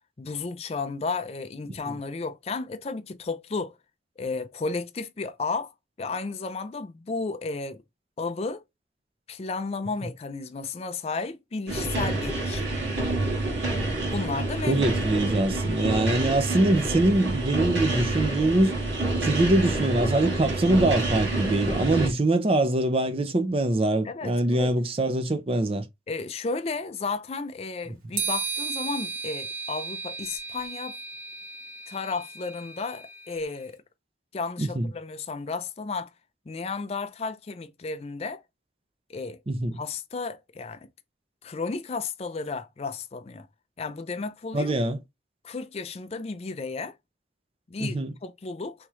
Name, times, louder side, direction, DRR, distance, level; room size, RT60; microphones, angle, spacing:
voice 1, 0.2-3.8 4.2-5.7 6.0-7.8 8.2-8.6 9.3-12.7 14.1-14.8 15.1-15.2 24.0-24.7 26.1-31.0 31.9-33.8 34.3-36.1 36.5-38.4 39.1-39.4 39.7-40.9 41.4-43.5 43.8-44.7 45.4-46.9 47.7-48.7, left 4 dB, 35° left, 0.4 m, -33 dB
sound 1, 11.7-22.1, right 2 dB, 80° right, 1.6 m, -27 dB
voice 2, 14.7-18.7 19.2-25.9 34.6-34.9 39.5-39.8 44.5-45.0 47.8-48.1, right 2 dB, 30° right, 0.5 m, -23 dB
sound 2, 28.2-33.5, right 4 dB, 50° right, 1.2 m, -35 dB
3.5 x 3.0 x 3.0 m
head